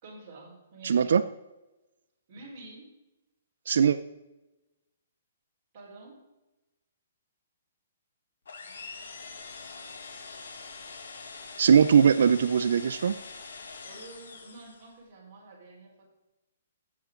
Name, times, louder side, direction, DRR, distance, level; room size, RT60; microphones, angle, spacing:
voice 1, 0.0-1.1 2.3-3.0 5.7-6.2 13.8-16.0, right 2 dB, 25° right, -6 dB, 4.3 m, -48 dB
voice 2, 0.8-1.2 3.7-4.0 11.6-13.2, right 7 dB, 70° right, 9 dB, 0.5 m, -20 dB
sound 1, 8.5-15.0, left 4 dB, 85° left, 1.9 m, -44 dB
15.5 x 7.2 x 3.8 m, 1.0 s
hypercardioid pair, 165°, 0 cm